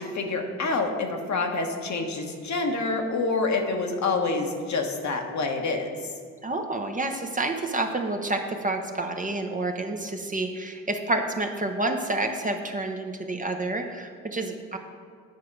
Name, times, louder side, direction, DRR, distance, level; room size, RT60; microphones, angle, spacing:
voice 1, 0.0-6.1, left 3 dB, 50° left, 3 dB, 1.3 m, -27 dB
voice 2, 6.4-14.8, right 2 dB, 20° right, 4 dB, 0.9 m, -29 dB
9.5 x 4.7 x 4.7 m, 2.2 s
hypercardioid pair, 60°, 37 cm